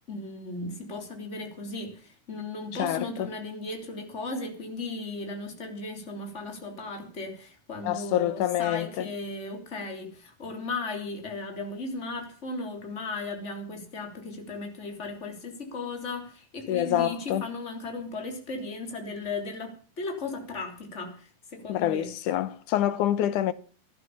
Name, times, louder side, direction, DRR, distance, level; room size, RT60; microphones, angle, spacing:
voice 1, 0.1-22.1, left 3 dB, 20° left, 3.5 m, -36 dB
voice 2, 7.8-9.1 16.7-17.4 21.7-23.5, left 12 dB, 80° left, 2.5 m, -26 dB
16.5 x 11.5 x 7.1 m
omnidirectional pair, 3.5 m